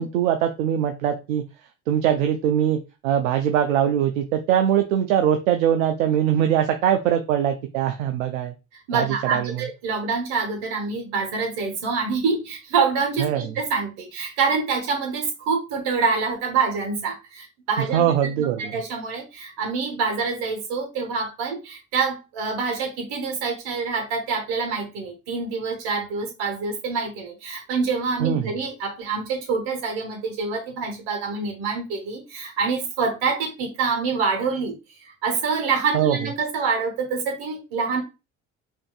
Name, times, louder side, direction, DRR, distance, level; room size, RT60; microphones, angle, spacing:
voice 1, 0.0-1.4 1.9-8.5 8.9-9.6 13.2-13.5 17.8-18.7 28.2-28.5 35.9-36.2, right 10 dB, 90° right, 6 dB, 0.5 m, -22 dB
voice 2, 8.9-18.1 18.4-34.7 35.0-38.0, right 5 dB, 70° right, 3 dB, 1.5 m, -26 dB
5.0 x 2.7 x 2.3 m, 0.28 s
hypercardioid pair, 60°, 38 cm